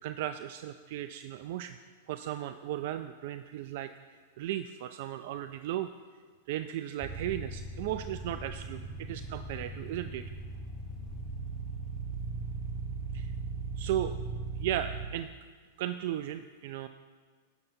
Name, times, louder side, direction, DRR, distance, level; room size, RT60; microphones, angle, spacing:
voice 1, 0.0-1.8 2.1-3.9 4.4-5.9 6.5-10.2 13.1-13.3 13.8-14.1 14.6-15.3 15.8-16.9, right 12 dB, 60° right, 10 dB, 0.3 m, -35 dB
sound 1, 7.0-15.1, right 3 dB, 20° right, 1.3 m, -38 dB
18.0 x 7.0 x 2.7 m, 1.5 s
hypercardioid pair, 105°, 0 cm